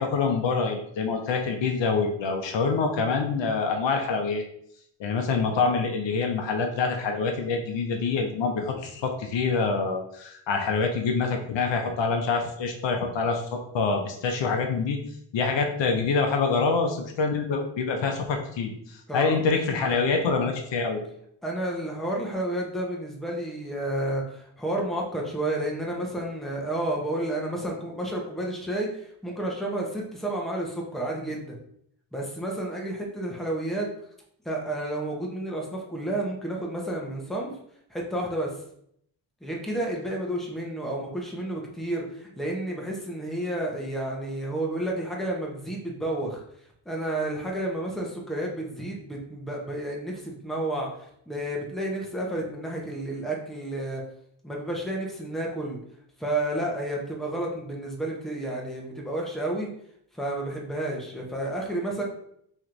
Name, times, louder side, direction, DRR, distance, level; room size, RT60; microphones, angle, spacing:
voice 1, 0.0-4.4 5.0-15.0 15.3-21.0, left 4 dB, 65° left, 3 dB, 0.7 m, -26 dB
voice 2, 19.1-19.4 21.4-31.6 32.1-33.9 34.4-37.5 37.9-38.5 39.4-46.4 46.8-50.9 51.3-54.0 54.4-55.8 56.2-59.7 60.1-62.0, right 1 dB, ahead, -2 dB, 0.9 m, -31 dB
3.1 x 3.0 x 3.8 m, 0.70 s
cardioid pair, 85°, 47 cm